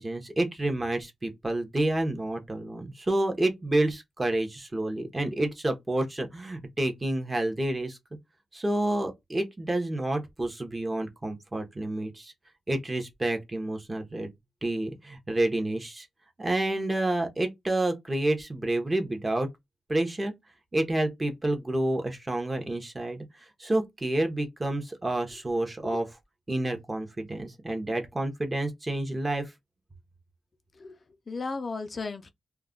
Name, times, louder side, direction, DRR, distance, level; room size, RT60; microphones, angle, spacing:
voice 1, 0.0-8.0 8.5-12.3 12.7-14.3 14.6-16.1 16.4-19.5 19.9-20.3 20.7-23.2 23.6-26.1 26.5-29.5, right 1 dB, 20° right, 0.7 m, -29 dB
voice 2, 30.7-32.3, left 4 dB, 45° left, 0.3 m, -36 dB
2.3 x 2.1 x 3.6 m
wide cardioid pair, 100°, 0 cm